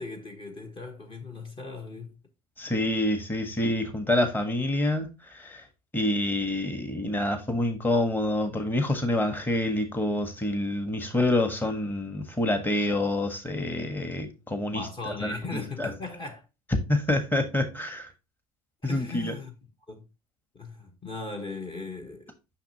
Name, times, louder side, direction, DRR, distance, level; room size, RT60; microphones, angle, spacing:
voice 1, 0.0-2.2 14.7-16.5 18.8-19.5 19.9-20.0 20.5-22.3, left 3 dB, 30° left, 1.3 m, -38 dB
voice 2, 2.6-5.6 5.9-15.9 16.9-18.1 18.8-19.3, left 1 dB, 10° left, 1.4 m, -27 dB
6.0 x 5.8 x 2.8 m
hypercardioid pair, 90°, 18 cm